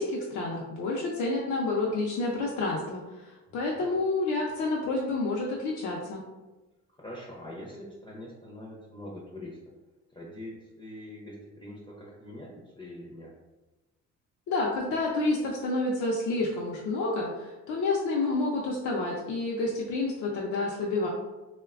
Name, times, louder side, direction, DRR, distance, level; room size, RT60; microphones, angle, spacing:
voice 1, 0.0-6.2 14.5-21.1, left 2 dB, 70° left, -3 dB, 0.5 m, -29 dB
voice 2, 7.0-9.6 10.1-13.3, left 1 dB, 15° left, -4 dB, 0.5 m, -43 dB
3.1 x 2.1 x 2.3 m, 1.1 s
cardioid pair, 90°, 30 cm